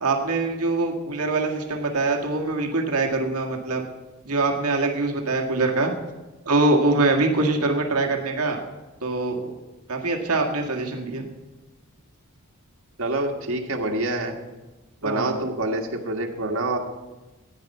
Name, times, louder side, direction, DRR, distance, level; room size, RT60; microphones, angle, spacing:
voice 1, 0.0-3.8 4.3-5.9 6.5-8.6 9.0-9.5 9.9-11.3 15.0-15.4, right 2 dB, 90° right, 2 dB, 1.8 m, -23 dB
voice 2, 13.0-14.3 15.0-16.8, right 2 dB, 70° right, 2 dB, 1.5 m, -26 dB
14.5 x 9.7 x 5.5 m, 1.1 s
head